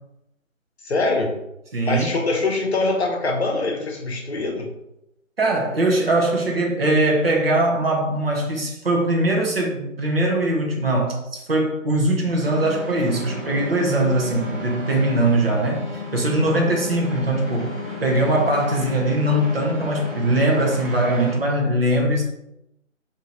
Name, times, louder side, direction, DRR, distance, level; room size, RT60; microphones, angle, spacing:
voice 1, 0.8-1.3 1.8-4.7, left 3 dB, 55° left, 1 dB, 0.8 m, -23 dB
voice 2, 1.7-2.1 5.4-17.7 18.0-22.2, right 1 dB, 45° right, 0 dB, 0.8 m, -21 dB
sound 1, 12.4-21.3, left 2 dB, 5° right, 1.2 m, -33 dB
3.6 x 2.7 x 2.8 m, 0.84 s
figure-of-eight pair, 150°, 40 cm